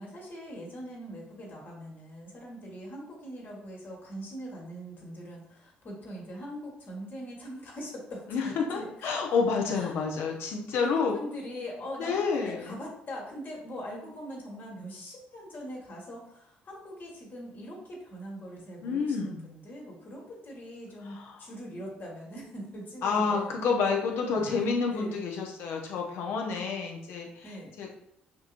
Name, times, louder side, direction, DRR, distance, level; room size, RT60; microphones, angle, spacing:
voice 1, 0.0-9.1 9.7-10.0 10.8-23.6 24.3-24.6 24.9-25.2 27.4-27.7, equal, 50° left, -2 dB, 1.6 m, -42 dB
voice 2, 8.3-11.2 12.0-12.8 18.8-19.4 21.0-21.4 23.0-27.9, left 5 dB, 70° left, 1 dB, 0.8 m, -29 dB
5.8 x 2.9 x 2.5 m, 0.73 s
hypercardioid pair, 55°, 4 cm